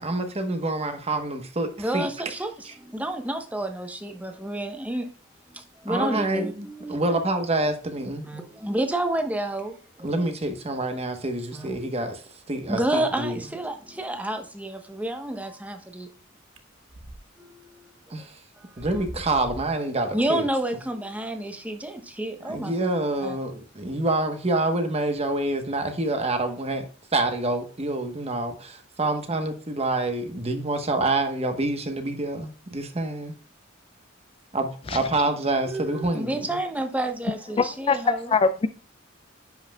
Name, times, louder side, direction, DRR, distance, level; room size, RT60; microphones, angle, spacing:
voice 1, 0.0-2.1 2.7-2.8 5.9-8.2 10.0-12.2 12.5-13.3 18.1-18.3 18.8-20.4 22.4-26.8 27.1-33.3 34.5-36.6, right 2 dB, 30° right, 1.0 m, -27 dB
voice 2, 1.8-5.1 5.5-7.0 8.2-10.3 11.5-11.7 12.7-16.1 17.4-17.9 20.1-22.9 23.2-23.4 35.6-38.3, right 1 dB, 10° right, 0.9 m, -30 dB
sound 1, 16.6-17.2 17.6-17.7 18.4-18.5 18.8-19.9, right 1 dB, 75° right, 0.9 m, -40 dB
voice 3, 37.6-38.7, left 4 dB, 30° left, 0.3 m, -22 dB
10.5 x 5.6 x 2.2 m
head